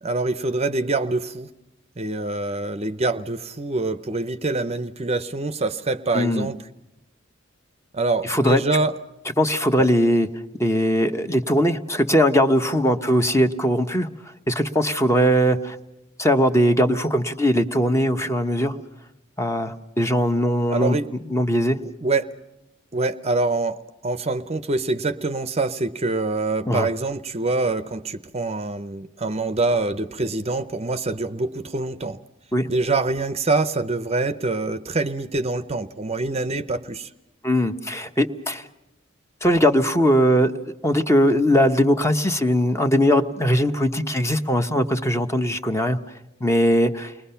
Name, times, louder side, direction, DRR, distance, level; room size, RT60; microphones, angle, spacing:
voice 1, 0.0-1.5 2.0-6.6 7.9-8.9 20.7-21.1 22.0-22.3 22.9-32.2 32.7-37.1, right 3 dB, 30° right, 11 dB, 0.7 m, -25 dB
voice 2, 6.1-6.5 8.2-8.6 9.4-10.3 10.6-14.1 14.5-15.8 16.2-18.8 19.4-21.0 21.2-21.8 26.6-26.9 32.5-32.7 37.4-38.7 39.4-40.5 40.8-46.0 46.4-47.1, equal, 15° left, 7 dB, 1.0 m, -20 dB
29.5 x 21.5 x 5.7 m, 0.90 s
head